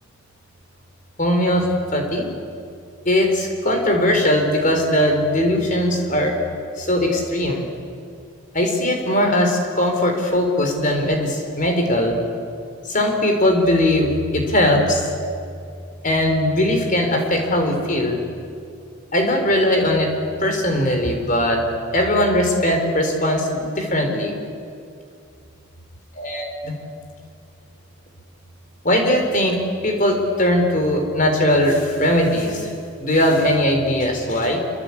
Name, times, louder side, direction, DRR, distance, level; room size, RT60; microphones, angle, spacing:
voice 1, 1.2-2.2 3.0-6.3 6.8-7.7 8.5-12.2 12.9-15.1 16.0-18.2 19.1-20.1 20.4-21.6 21.9-24.3 26.1-26.7 28.8-32.7 33.0-34.6, left 1 dB, 35° left, 3 dB, 4.5 m, -19 dB
27.5 x 25.0 x 8.7 m, 2.4 s
head